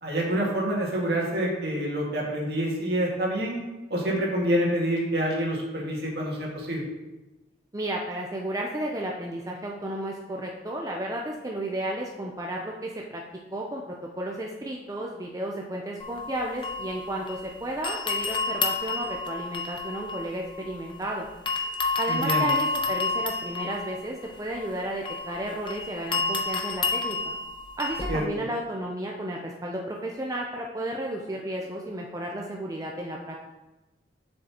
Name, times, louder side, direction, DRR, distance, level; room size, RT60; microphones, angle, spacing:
voice 1, 0.0-3.6 3.9-6.8 22.1-22.5 28.1-28.4, right 1 dB, 60° right, -2 dB, 1.8 m, -27 dB
voice 2, 7.7-13.2 13.5-21.3 22.0-27.2 27.8-33.4, right 1 dB, 20° right, -1 dB, 0.5 m, -33 dB
sound 1, 16.0-17.5 17.8-21.0 21.5-28.2, left 3 dB, 25° left, 0.6 m, -30 dB
7.1 x 6.5 x 2.9 m, 1.0 s
head